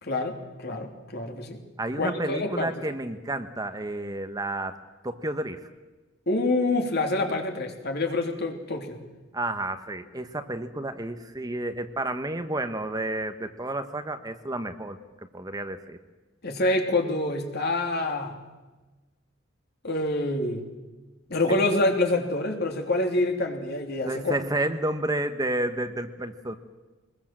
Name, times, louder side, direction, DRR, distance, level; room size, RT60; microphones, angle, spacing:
voice 1, 0.0-1.6 2.0-2.7 6.3-9.0 16.4-18.4 19.8-20.6 21.3-24.4, left 2 dB, 55° left, 3 dB, 3.2 m, -26 dB
voice 2, 1.8-4.7 5.0-5.7 9.3-15.0 15.3-16.0 24.1-26.6, right 1 dB, 20° right, 8 dB, 1.2 m, -31 dB
23.5 x 21.0 x 7.6 m, 1.2 s
head